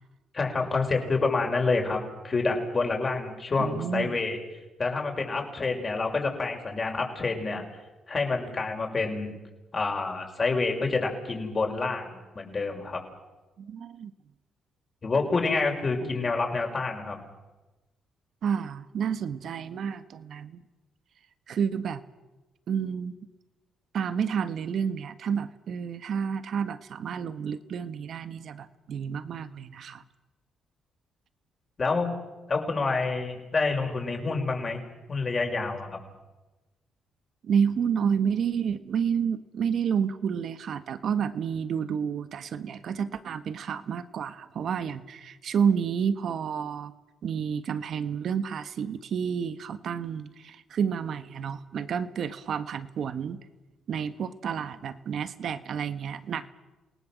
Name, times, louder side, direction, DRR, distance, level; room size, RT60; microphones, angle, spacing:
voice 1, 0.3-4.4 4.8-7.6 8.1-9.3 9.7-13.0 15.0-17.2 31.8-32.2 32.5-34.8 35.1-36.0, left 3 dB, 35° left, 2 dB, 6.1 m, -28 dB
voice 2, 3.6-4.2 13.6-14.1 16.0-16.1 18.4-20.6 21.5-22.0 22.7-23.2 23.9-30.0 37.4-46.9 47.2-53.4 53.9-56.5, right 7 dB, 65° right, 11 dB, 1.6 m, -30 dB
28.5 x 19.0 x 7.7 m, 1.1 s
cardioid pair, 90°, 0 cm